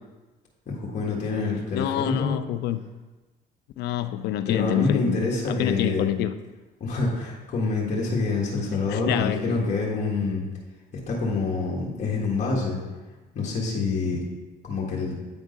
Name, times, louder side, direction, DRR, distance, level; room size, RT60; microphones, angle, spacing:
voice 1, 0.7-2.3 4.5-6.1 6.8-10.4 11.1-12.8 13.3-14.2 14.6-15.1, left 3 dB, 45° left, -4 dB, 1.6 m, -26 dB
voice 2, 1.7-2.8 3.8-5.2 5.5-6.3 8.7-9.6, left 11 dB, 80° left, 12 dB, 0.5 m, -27 dB
9.1 x 3.6 x 5.2 m, 1.2 s
cardioid pair, 110°, 17 cm